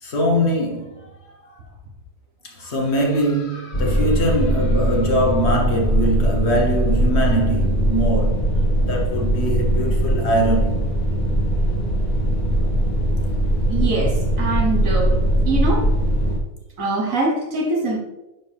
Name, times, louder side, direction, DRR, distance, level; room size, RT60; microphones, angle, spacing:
voice 1, 0.0-1.1 1.4-1.6 2.4-10.9, equal, 50° left, 1.3 m, -22 dB
sound 1, 3.7-16.4, right 1 dB, 30° left, 1.9 m, -20 dB
voice 2, 13.7-15.2 15.5-16.0 16.8-18.0, right 2 dB, 60° right, 1.5 m, -23 dB
10.5 x 4.4 x 3.4 m
omnidirectional pair, 1.6 m